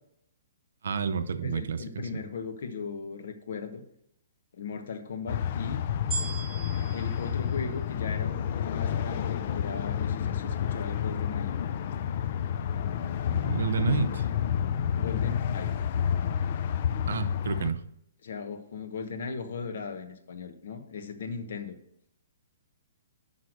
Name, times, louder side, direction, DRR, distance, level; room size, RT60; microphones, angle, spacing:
voice 1, 0.8-1.8 13.3-14.2 17.1-17.8, right 6 dB, 75° right, 11 dB, 0.7 m, -29 dB
voice 2, 1.4-3.8 4.5-5.8 6.9-11.5 15.0-15.7 18.2-21.8, left 5 dB, 60° left, 7 dB, 1.1 m, -37 dB
sound 1, 5.3-17.7, left 8 dB, 40° left, 0.4 m, -30 dB
sound 2, 6.1-8.5 9.1-9.2, right 5 dB, 10° left, 2.1 m, -39 dB
6.2 x 5.6 x 6.4 m, 0.74 s
hypercardioid pair, 170°, 0 cm